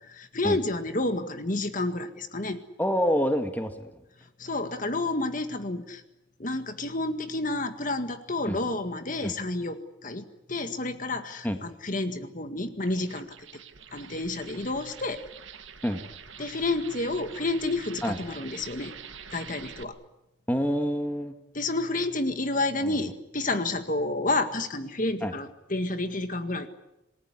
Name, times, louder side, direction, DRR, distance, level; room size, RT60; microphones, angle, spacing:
voice 1, 0.1-2.6 4.4-6.0 6.4-10.2 10.5-13.3 13.9-15.2 16.4-18.9 19.3-20.0 21.5-26.7, left 2 dB, 45° left, 8 dB, 1.8 m, -30 dB
voice 2, 2.8-3.9 8.5-8.6 9.2-9.3 11.4-11.6 15.8-16.0 18.0-18.2 20.5-21.3 22.8-23.0 25.2-25.3, equal, 10° left, 6 dB, 1.8 m, -27 dB
sound 1, 12.7-19.8, right 7 dB, 90° right, 1.8 m, -46 dB
27.5 x 19.5 x 9.8 m, 0.91 s
head